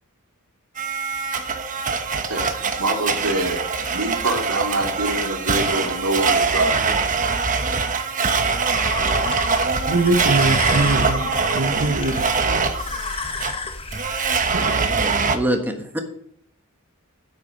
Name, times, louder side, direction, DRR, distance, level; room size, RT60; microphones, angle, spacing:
Domestic sounds home sounds, 0.8-15.4, right 4 dB, 35° right, 1.1 m, -23 dB
voice 1, 2.3-3.6 3.9-6.9, right 1 dB, 85° right, -1 dB, 3.2 m, -25 dB
sound 1, 8.7-14.8, left 4 dB, 25° left, 1.1 m, -31 dB
voice 2, 9.9-11.2 11.5-12.2 14.5-14.8, right 2 dB, 60° right, 5 dB, 1.1 m, -22 dB
voice 3, 15.3-16.0, right 1 dB, 10° right, 4 dB, 1.3 m, -23 dB
9.5 x 8.3 x 5.2 m, 0.68 s
head